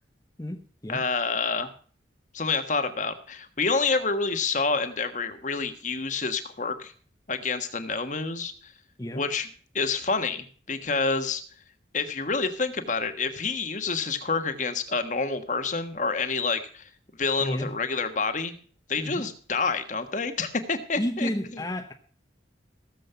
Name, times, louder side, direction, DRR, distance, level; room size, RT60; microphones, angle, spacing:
voice 1, 0.4-1.0 9.0-9.2 17.4-17.7 19.0-19.2 21.0-21.9, equal, 20° left, 0.9 m, -31 dB
voice 2, 0.9-1.7 2.3-6.9 7.3-8.7 9.1-9.5 9.7-11.4 11.9-16.9 17.2-18.5 18.9-21.3, left 4 dB, 40° left, 1.4 m, -28 dB
17.0 x 7.6 x 5.6 m
head